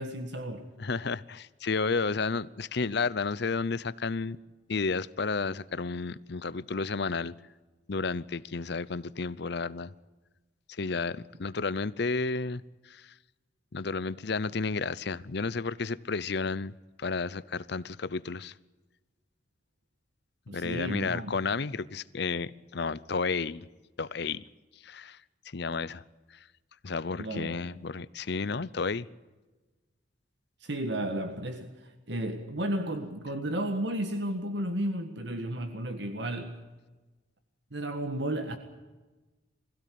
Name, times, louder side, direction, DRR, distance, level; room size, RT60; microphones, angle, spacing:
voice 1, 0.0-0.7 20.5-21.3 27.2-27.6 30.6-31.7 32.1-36.6 37.7-38.6, right 1 dB, 65° right, 1.7 m, -33 dB
voice 2, 0.8-4.4 4.7-7.3 7.9-9.9 10.7-13.1 13.7-16.7 17.0-18.5 20.5-23.7 24.0-24.4 24.8-25.2 25.5-26.0 26.8-29.1, left 4 dB, 60° left, 0.7 m, -32 dB
22.0 x 16.0 x 9.4 m
head